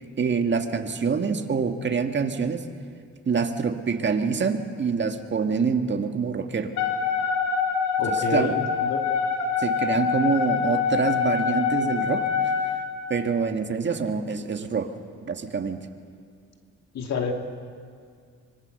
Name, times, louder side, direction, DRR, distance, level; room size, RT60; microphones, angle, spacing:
voice 1, 0.2-2.6 3.3-6.7 8.1-8.5 9.6-12.5 13.1-14.9 15.2-15.8, right 5 dB, 40° right, 5 dB, 1.9 m, -26 dB
Wind instrument woodwind instrument, 6.8-12.8, left 6 dB, 90° left, 4.6 m, -25 dB
voice 2, 8.0-9.0 16.9-17.3, left 4 dB, 60° left, 3 dB, 2.5 m, -28 dB
24.5 x 21.5 x 6.7 m, 2.1 s
cardioid pair, 90°, 30 cm